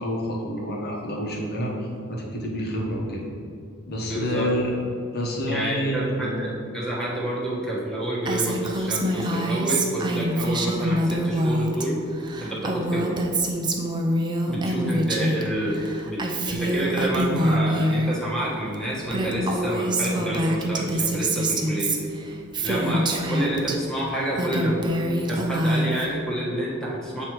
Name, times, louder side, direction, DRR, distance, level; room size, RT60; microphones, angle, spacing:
voice 1, 0.0-1.7 2.1-3.3 3.9-4.7 5.1-6.4, equal, 50° left, -2 dB, 1.3 m, -28 dB
voice 2, 4.1-4.5 5.5-12.0 12.4-13.2 14.5-16.2 16.5-21.9 22.6-24.9 25.3-27.3, right 1 dB, 5° left, -6 dB, 1.3 m, -28 dB
Female speech woman speaking, 8.3-11.9 12.1-15.4 15.7-18.1 18.7-18.8 19.1-23.8 24.2-26.1, right 1 dB, 20° right, 0.5 m, -25 dB
7.8 x 3.1 x 4.6 m, 2.5 s
head